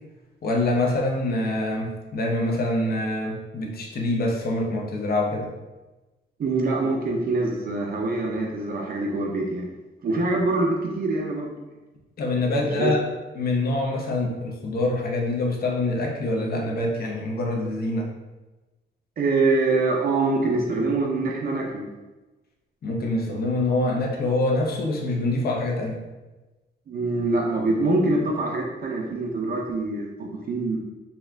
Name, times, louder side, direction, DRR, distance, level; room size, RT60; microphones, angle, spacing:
voice 1, 0.4-5.5 12.2-13.0 13.4-18.1 22.8-26.0, left 2 dB, 55° left, 0 dB, 0.8 m, -25 dB
voice 2, 6.4-9.7 10.0-11.5 12.8-12.9 19.2-21.9 26.9-30.8, right 2 dB, 50° right, 0 dB, 0.6 m, -24 dB
4.2 x 2.3 x 3.4 m, 1.1 s
wide cardioid pair, 140°, 19 cm